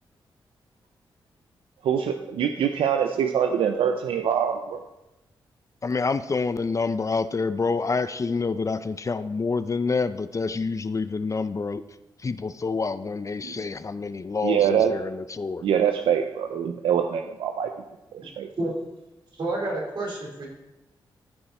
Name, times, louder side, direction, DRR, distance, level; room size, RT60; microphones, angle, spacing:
voice 1, 1.8-4.8 14.4-14.9 15.6-17.7 18.1-18.5, right 8 dB, 90° right, 6 dB, 0.5 m, -24 dB
voice 2, 5.8-11.8 12.2-15.7, left 4 dB, 35° left, 13 dB, 0.5 m, -27 dB
voice 3, 19.3-20.5, right 2 dB, 60° right, -3 dB, 3.9 m, -29 dB
14.0 x 5.6 x 4.3 m, 0.98 s
cardioid pair, 60°, 9 cm